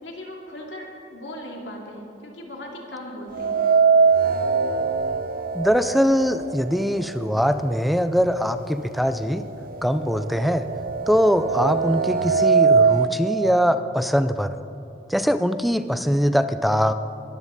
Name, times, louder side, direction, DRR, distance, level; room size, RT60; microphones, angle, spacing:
voice 1, 0.0-3.6, left 1 dB, 85° left, 0 dB, 2.7 m, -38 dB
sound 1, 3.3-7.4 7.7-7.8 8.8-8.9 9.3-13.1, right 5 dB, 55° right, 0.6 m, -22 dB
voice 2, 5.5-9.4 9.8-10.7 11.1-14.5 15.1-16.9, equal, ahead, 10 dB, 0.5 m, -22 dB
21.0 x 15.0 x 4.1 m, 2.8 s
head